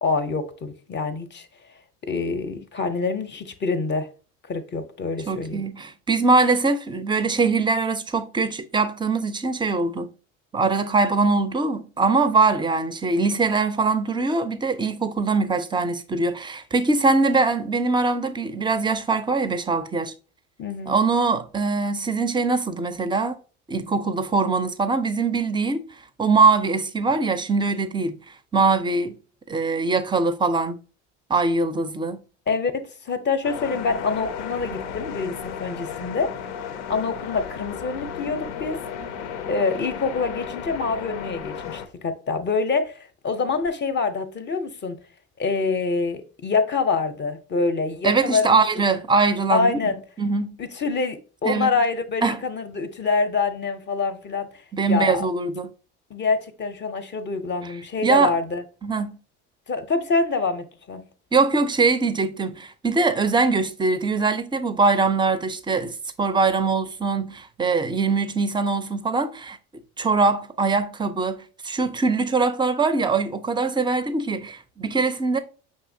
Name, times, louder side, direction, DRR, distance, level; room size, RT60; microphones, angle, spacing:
voice 1, 0.0-1.8 2.0-4.1 4.5-5.6 20.6-21.0 32.5-36.4 36.9-38.8 39.5-45.0 45.4-48.6 49.5-50.0 50.6-55.3 56.1-58.6 59.7-61.0, left 4 dB, 30° left, 0.6 m, -26 dB
voice 2, 5.3-10.1 10.5-20.1 20.9-23.4 23.7-29.1 29.5-30.8 31.3-32.2 48.0-49.8 50.2-50.6 51.4-51.7 52.2-52.4 54.7-55.7 57.6-57.7 58.0-58.3 58.8-59.2 61.3-69.6 70.0-75.4, right 4 dB, 15° right, 0.4 m, -22 dB
sound 1, 33.4-41.9, left 7 dB, 85° left, 0.5 m, -34 dB
5.5 x 2.8 x 2.6 m
supercardioid pair, 85°, 35 cm